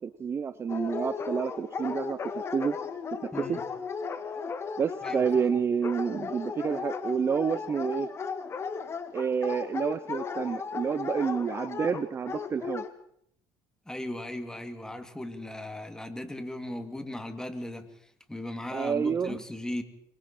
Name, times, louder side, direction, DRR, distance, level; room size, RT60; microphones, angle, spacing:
voice 1, 0.0-2.8 3.1-3.6 4.8-8.1 9.1-12.8 18.7-19.4, right 6 dB, 30° right, 14 dB, 0.8 m, -29 dB
Dog, 0.7-12.9, left 5 dB, 35° left, 2.0 m, -35 dB
voice 2, 3.3-3.6 5.0-5.6 13.9-17.9 18.3-19.8, left 1 dB, 10° left, 7 dB, 2.7 m, -37 dB
27.5 x 23.0 x 4.5 m, 0.70 s
cardioid pair, 105°, 8 cm